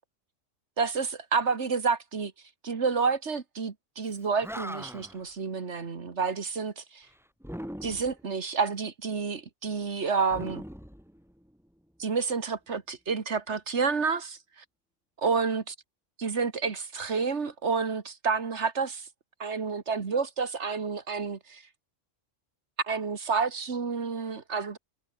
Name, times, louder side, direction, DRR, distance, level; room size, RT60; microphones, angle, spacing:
voice 1, 0.8-2.3 2.6-7.1 7.8-10.6 12.0-14.6 15.2-15.7 16.2-19.1 19.4-21.6 22.8-24.8, right 5 dB, 65° right, 2.0 m, -29 dB
Animal, 4.1-4.2 4.4-5.2 7.4-8.3 10.3-11.6, equal, ahead, 3.0 m, -40 dB
omnidirectional pair, 1.3 m